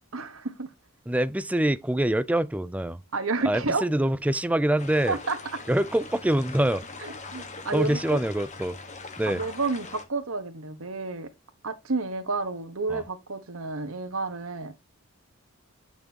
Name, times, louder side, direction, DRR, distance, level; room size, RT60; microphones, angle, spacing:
voice 1, 0.1-0.7 3.1-3.8 5.1-5.4 7.0-8.2 9.3-11.3 11.6-14.8, right 3 dB, 90° right, 1.3 m, -30 dB
voice 2, 1.1-3.0 3.4-5.2 5.7-6.8 7.7-8.8 9.2-9.4 12.9-13.0, right 1 dB, 5° right, 0.4 m, -25 dB
sound 1, 4.8-10.0, left 3 dB, 35° left, 1.4 m, -42 dB
8.9 x 6.1 x 2.9 m
head